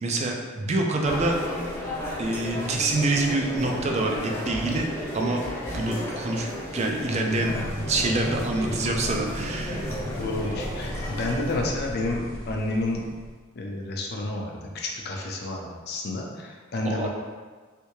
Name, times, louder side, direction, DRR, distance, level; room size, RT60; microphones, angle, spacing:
voice 1, 0.0-1.4 2.2-4.9 5.1-5.4 5.7-6.5 6.7-7.5 7.9-9.9 16.8-17.1, right 2 dB, 35° right, 1 dB, 0.4 m, -26 dB
sound 1, 1.0-11.6, left 1 dB, 15° left, 0.7 m, -34 dB
sound 2, 7.4-13.3, equal, 60° right, 0.8 m, -35 dB
voice 2, 10.2-13.0 13.6-17.1, left 2 dB, 50° left, 0 dB, 0.5 m, -30 dB
3.3 x 2.7 x 3.0 m, 1.4 s
head